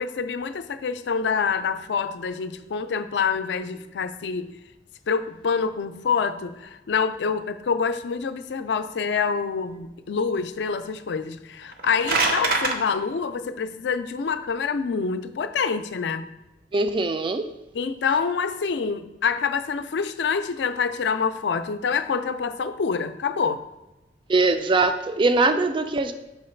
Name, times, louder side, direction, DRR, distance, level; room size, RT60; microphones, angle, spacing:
voice 1, 0.0-4.5 5.1-16.3 17.7-23.6, left 5 dB, 70° left, 11 dB, 0.4 m, -26 dB
sound 1, 11.6-12.8, right 3 dB, 55° right, 0.7 m, -23 dB
voice 2, 16.7-17.5 24.3-26.1, right 3 dB, 30° right, 9 dB, 0.3 m, -22 dB
5.8 x 3.9 x 4.4 m, 1.0 s
head